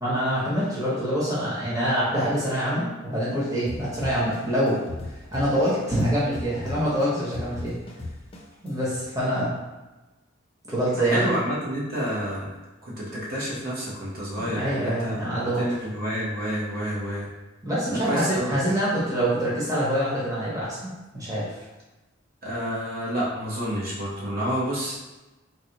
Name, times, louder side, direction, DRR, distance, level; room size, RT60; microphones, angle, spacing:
voice 1, 0.0-4.8 5.3-7.7 8.6-9.5 10.7-11.3 14.4-15.6 17.6-21.5, equal, 20° right, -9 dB, 0.9 m, -25 dB
sound 1, 3.7-6.0 6.3-8.7, left 2 dB, 30° left, 0.5 m, -36 dB
voice 2, 11.0-12.5 12.8-15.2 15.6-17.3 17.9-18.5 22.4-25.0, equal, 50° right, -7 dB, 1.0 m, -29 dB
3.9 x 2.2 x 2.9 m, 1.1 s
head